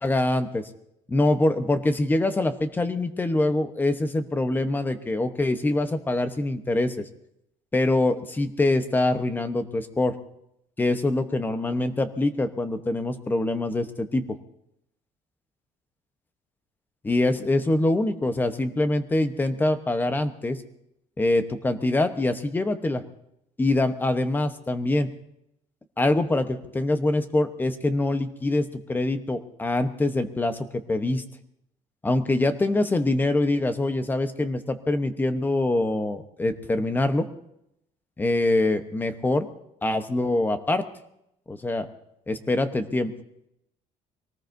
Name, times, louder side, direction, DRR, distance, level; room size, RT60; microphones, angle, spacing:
voice 1, 0.0-0.6 1.1-7.0 7.7-10.1 10.8-14.4 17.0-20.6 21.2-23.0 23.6-25.1 26.0-31.2 32.0-37.3 38.2-39.5 39.8-40.8 41.5-41.9 42.3-43.1, left 2 dB, 15° left, 9 dB, 0.9 m, -24 dB
24.0 x 19.0 x 2.7 m, 0.79 s
cardioid pair, 150°, 13 cm